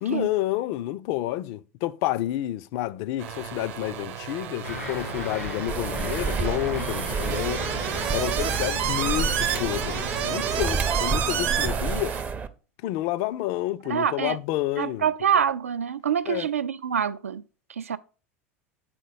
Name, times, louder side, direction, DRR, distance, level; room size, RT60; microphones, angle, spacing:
voice 1, 0.0-7.7 8.1-12.2 12.8-15.1 16.3-16.5, left 15 dB, 50° left, 0.4 m, -29 dB
sound 1, 3.2-12.2, right 9 dB, 55° right, 0.8 m, -31 dB
sound 2, 4.6-10.6, left 1 dB, 90° left, 1.6 m, -36 dB
sound 3, 5.7-12.5, right 5 dB, 20° right, 0.5 m, -30 dB
voice 2, 13.8-14.4 14.8-17.4 17.7-18.0, right 8 dB, 75° right, 0.4 m, -26 dB
7.6 x 3.9 x 4.9 m
figure-of-eight pair, 80°, 8 cm